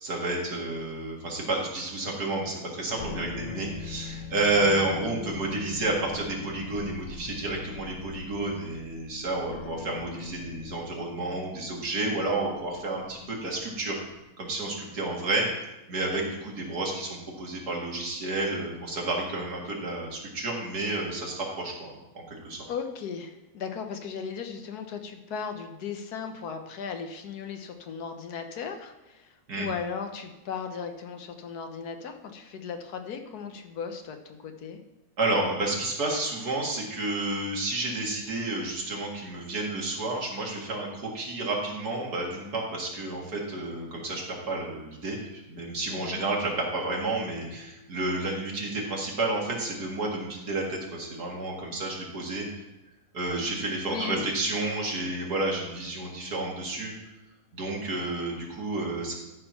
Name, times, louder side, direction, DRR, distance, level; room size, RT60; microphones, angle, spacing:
voice 1, 0.0-14.0 14.4-15.5 15.9-22.7 29.5-29.7 35.2-52.5 53.1-56.9 57.5-59.1, right 2 dB, 85° right, -2 dB, 2.5 m, -30 dB
sound 1, 2.9-14.3, left 5 dB, 55° left, 0.9 m, -42 dB
voice 2, 22.7-34.8 45.9-46.2 53.8-54.3, left 6 dB, 85° left, 6 dB, 1.5 m, -37 dB
13.0 x 4.5 x 5.7 m, 1.0 s
omnidirectional pair, 1.6 m